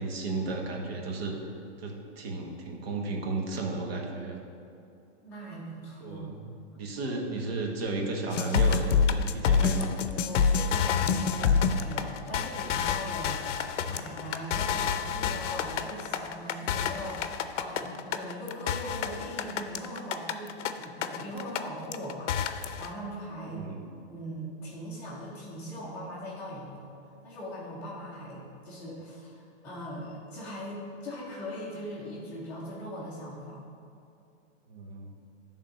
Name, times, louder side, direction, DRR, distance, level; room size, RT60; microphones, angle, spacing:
voice 1, 0.0-1.3 1.8-4.4 6.0-6.5 6.7-10.0 23.4-23.8 34.7-35.1, right 3 dB, 55° right, 1 dB, 1.5 m, -34 dB
voice 2, 5.2-6.4 6.9-7.2 10.1-23.6 24.1-26.9 27.2-33.6, equal, 5° left, -11 dB, 0.6 m, -40 dB
sound 1, 8.3-21.6 21.9-22.9, left 6 dB, 75° left, 0.6 m, -28 dB
10.0 x 3.7 x 5.2 m, 2.7 s
hypercardioid pair, 165°, 36 cm